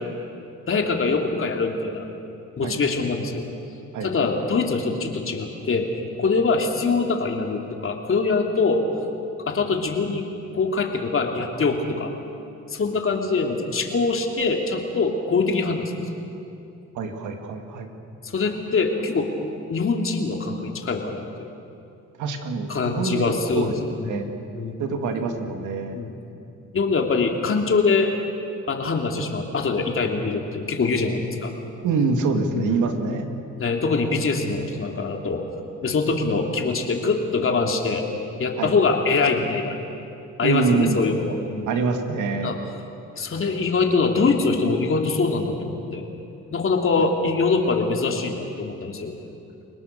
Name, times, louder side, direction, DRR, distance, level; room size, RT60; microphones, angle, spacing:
voice 1, 0.7-2.1 2.6-3.5 4.0-5.9 6.2-8.8 9.5-10.3 10.5-12.1 12.7-16.1 18.2-19.3 19.7-21.5 22.7-23.7 24.0-24.3 24.5-24.8 25.9-26.2 26.7-28.1 28.7-31.5 32.5-33.2 33.5-35.4 35.8-38.0 38.4-39.8 40.4-41.7 42.4-42.6 43.2-46.1 46.5-49.1, left 4 dB, 45° left, 2 dB, 3.0 m, -23 dB
voice 2, 3.9-4.3 17.0-17.9 22.2-23.7 24.1-24.3 24.8-26.0 31.8-33.2 38.6-38.7 40.4-41.0 41.7-42.5, right 4 dB, 80° right, 5 dB, 2.4 m, -25 dB
30.0 x 18.5 x 6.7 m, 2.7 s
cardioid pair, 90°, 30 cm